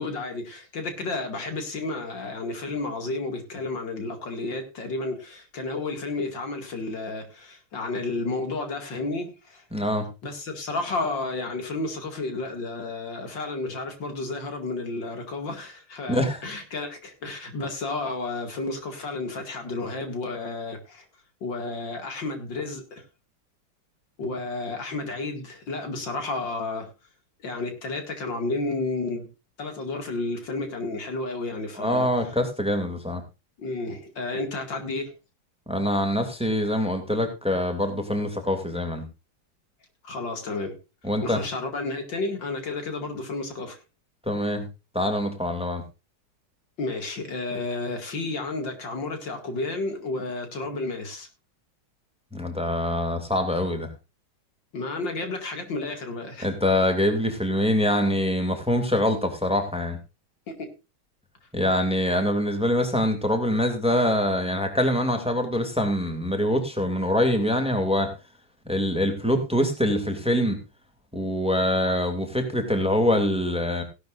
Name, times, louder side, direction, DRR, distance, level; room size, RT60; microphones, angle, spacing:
voice 1, 0.0-9.6 10.2-21.0 21.4-23.0 24.2-26.9 27.4-29.3 29.6-32.3 33.6-35.1 40.0-40.7 41.2-43.8 46.8-51.3 54.7-56.5 60.5-60.7, left 3 dB, 60° left, 2.9 m, -31 dB
voice 2, 9.7-10.1 16.1-16.4 31.8-33.2 35.7-39.0 41.0-41.4 44.3-44.7 44.9-45.8 52.3-53.9 56.4-60.0 61.5-68.1 68.7-70.6 71.1-73.8, left 1 dB, 5° right, 2.5 m, -24 dB
17.0 x 12.0 x 2.6 m
omnidirectional pair, 2.2 m